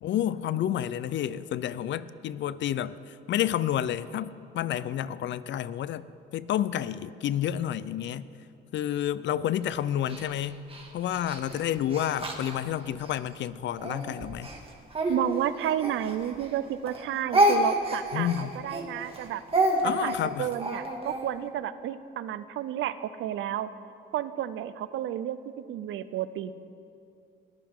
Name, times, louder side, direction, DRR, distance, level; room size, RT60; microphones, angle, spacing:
voice 1, 0.0-6.1 6.3-8.3 8.7-10.6 10.9-14.5 18.1-18.5 19.8-20.5, left 11 dB, 70° left, 16 dB, 0.5 m, -30 dB
Speech, 10.1-13.2 13.8-16.6 16.8-21.3, right 1 dB, 30° right, 2.1 m, -29 dB
voice 2, 15.1-19.4 19.8-23.7 24.1-25.4 25.7-26.5, right 11 dB, 80° right, 14 dB, 0.7 m, -31 dB
21.5 x 14.0 x 3.7 m, 2.6 s
cardioid pair, 90°, 20 cm